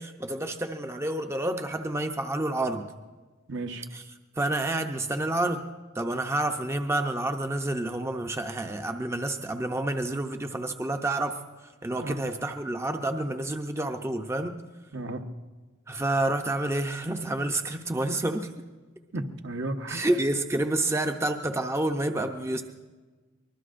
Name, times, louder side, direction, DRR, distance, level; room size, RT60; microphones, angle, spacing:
voice 1, 0.0-2.9 3.9-4.0 4.4-5.6 5.9-14.6 15.9-18.5 19.9-22.6, right 1 dB, 15° right, 6 dB, 0.6 m, -29 dB
voice 2, 3.5-3.8 12.0-12.2 14.9-15.2 19.1-20.1, right 2 dB, 65° right, 6 dB, 1.1 m, -33 dB
24.0 x 20.5 x 2.5 m, 1.3 s
head